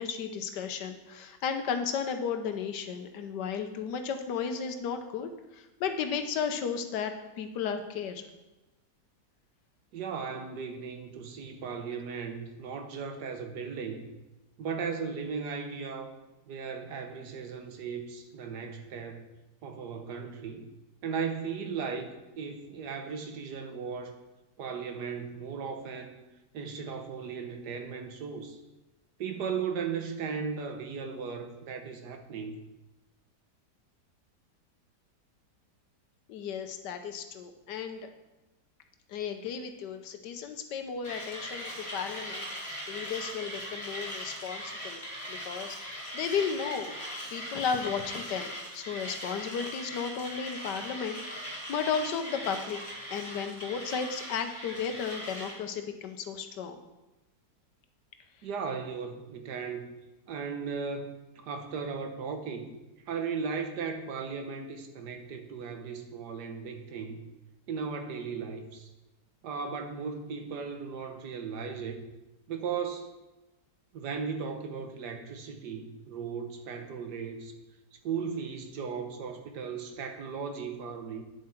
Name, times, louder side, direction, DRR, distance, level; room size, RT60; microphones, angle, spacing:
voice 1, 0.0-8.2 36.3-38.0 39.1-42.4 42.9-45.0 45.3-45.8 46.1-46.9 47.3-52.8 53.1-56.8, left 6 dB, 80° left, 7 dB, 1.4 m, -34 dB
voice 2, 9.9-14.1 14.6-16.2 16.5-19.3 19.6-20.7 21.0-24.2 24.6-26.2 26.5-28.6 29.2-32.6 58.4-59.9 60.3-62.7 63.1-67.2 67.7-68.9 69.4-72.0 72.5-73.1 73.9-77.5 78.0-81.2, right 5 dB, 75° right, 6 dB, 1.6 m, -36 dB
Mechanisms, 41.0-55.6, equal, 10° left, 3.4 m, -40 dB
9.9 x 7.3 x 4.4 m, 1.0 s
omnidirectional pair, 1.8 m